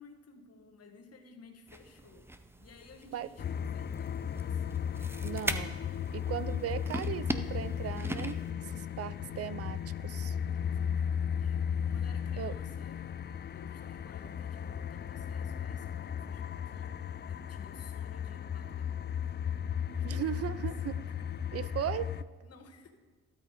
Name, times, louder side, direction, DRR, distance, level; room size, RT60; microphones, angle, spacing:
voice 1, 0.0-2.3 2.6-4.8 8.6-9.3 10.5-11.6 11.9-19.4 19.9-20.7 21.1-21.6 22.4-22.9, left 4 dB, 55° left, 5 dB, 1.7 m, -56 dB
sound 1, 1.7-8.5, right 1 dB, 10° right, 0.7 m, -41 dB
sound 2, 3.4-22.2, left 8 dB, 35° left, 0.4 m, -35 dB
voice 2, 5.2-5.8 6.1-8.4 9.0-10.4 12.4-12.6 20.0-21.0 21.5-22.1, right 10 dB, 55° right, 17 dB, 0.5 m, -37 dB
12.5 x 12.5 x 4.9 m, 1.4 s
cardioid pair, 90°, 30 cm